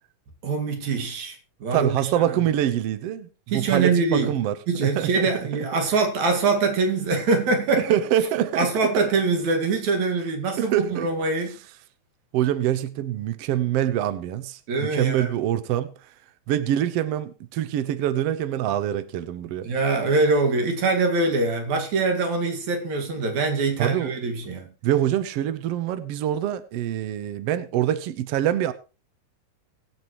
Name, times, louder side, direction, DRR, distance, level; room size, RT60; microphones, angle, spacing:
voice 1, 0.4-2.4 3.5-4.4 4.7-8.0 8.6-11.6 14.7-15.3 19.6-24.7, right 3 dB, 55° right, 3.2 m, -24 dB
voice 2, 1.7-4.5 4.8-5.1 7.8-8.7 10.6-11.1 12.3-15.9 16.5-19.7 23.8-24.1 24.8-28.7, right 11 dB, 80° right, 1.4 m, -25 dB
22.5 x 7.8 x 3.1 m
omnidirectional pair, 4.1 m